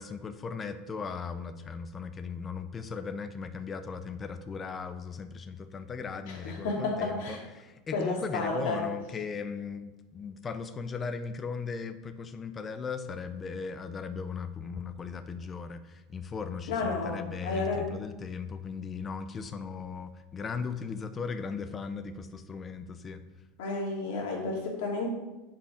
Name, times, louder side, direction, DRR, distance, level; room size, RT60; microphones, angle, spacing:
voice 1, 0.0-23.2, left 5 dB, 20° left, 10 dB, 0.5 m, -37 dB
voice 2, 6.3-7.4 7.9-8.9 16.7-17.9 23.6-25.1, left 3 dB, 70° left, -1 dB, 2.6 m, -32 dB
10.0 x 5.2 x 5.1 m, 1.1 s
supercardioid pair, 165°, 0 cm